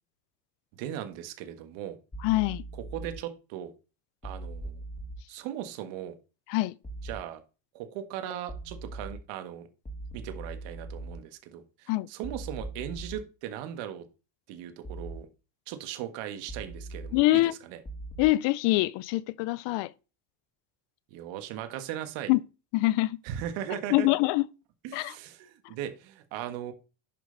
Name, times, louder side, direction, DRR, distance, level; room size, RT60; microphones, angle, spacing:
voice 1, 0.7-2.0 2.7-3.7 4.2-4.8 5.3-6.1 7.0-7.4 7.7-9.7 10.1-14.0 14.5-15.3 15.7-17.8 21.1-22.3 23.2-24.1 24.8-26.7, right 10 dB, 75° right, 1.7 m, -38 dB
sound 1, 2.1-3.1 4.2-5.2 6.8-7.2 8.5-9.1 9.9-11.1 12.2-13.2 14.8-15.2 16.5-17.1 17.9-18.2, right 2 dB, 15° left, 2.8 m, -40 dB
voice 2, 2.2-2.6 6.5-6.7 11.9-12.1 17.1-17.5 18.2-19.9 22.3-22.4 22.7-23.2 23.9-24.5 24.9-25.1, left 18 dB, 70° left, 0.7 m, -24 dB
11.0 x 5.4 x 3.9 m
supercardioid pair, 105°, 44 cm